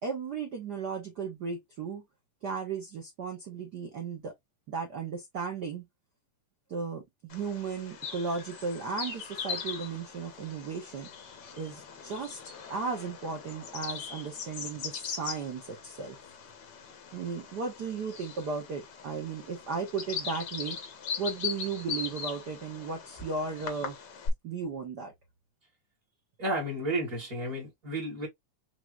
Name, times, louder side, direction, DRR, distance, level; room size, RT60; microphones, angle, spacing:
voice 1, 0.0-2.0 2.4-4.3 4.7-5.9 6.7-11.1 11.6-12.4 12.7-16.2 17.1-20.8 21.2-24.0 24.4-25.1, right 5 dB, 65° right, 1.0 m, -35 dB
Bird vocalization bird call bird song, 7.3-24.3, left 6 dB, 65° left, 1.1 m, -40 dB
voice 2, 26.4-28.3, right 1 dB, 35° right, 1.7 m, -32 dB
6.0 x 3.1 x 2.4 m
omnidirectional pair, 3.5 m